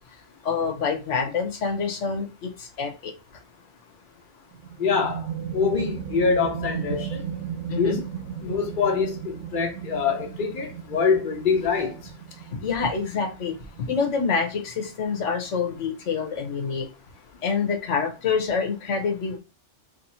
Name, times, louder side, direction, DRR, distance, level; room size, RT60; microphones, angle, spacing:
voice 1, 0.4-3.1 7.7-8.0 12.6-13.5 13.9-16.9 17.4-19.4, left 5 dB, 85° left, 1.3 m, -26 dB
sound 1, 4.5-15.9, right 8 dB, 90° right, 1.0 m, -36 dB
voice 2, 4.8-5.3 5.5-7.2 7.8-8.0 8.4-11.9, left 5 dB, 45° left, 1.0 m, -24 dB
3.1 x 2.8 x 4.2 m
omnidirectional pair, 1.2 m